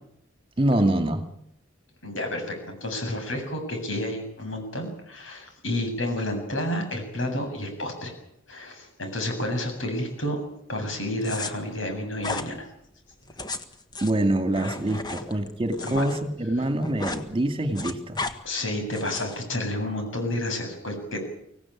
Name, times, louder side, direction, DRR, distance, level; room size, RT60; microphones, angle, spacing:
voice 1, 0.6-1.3 14.0-18.2, right 1 dB, 30° right, 7 dB, 2.3 m, -25 dB
voice 2, 2.0-8.1 8.5-10.4 10.7-12.7 15.8-16.0 18.4-21.3, left 1 dB, 85° left, 5 dB, 7.7 m, -30 dB
sound 1, 11.2-11.5 12.2-12.5 13.2-16.2 16.5-17.2 17.5-18.3 18.9-19.4, left 3 dB, 20° left, 1.6 m, -34 dB
25.0 x 17.5 x 8.7 m, 0.75 s
head